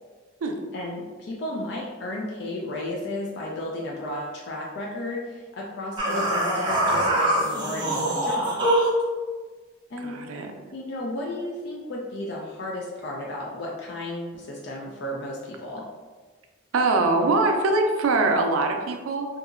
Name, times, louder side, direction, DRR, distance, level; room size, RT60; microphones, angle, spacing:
voice 1, 0.7-8.7 9.9-10.2 10.7-15.8, left 1 dB, 55° left, -2 dB, 0.3 m, -33 dB
sound 1, 6.0-9.0, right 1 dB, 25° right, 0.5 m, -23 dB
voice 2, 10.0-10.5 16.7-19.3, right 3 dB, 85° right, 4 dB, 0.4 m, -22 dB
2.8 x 2.4 x 2.4 m, 1.4 s
head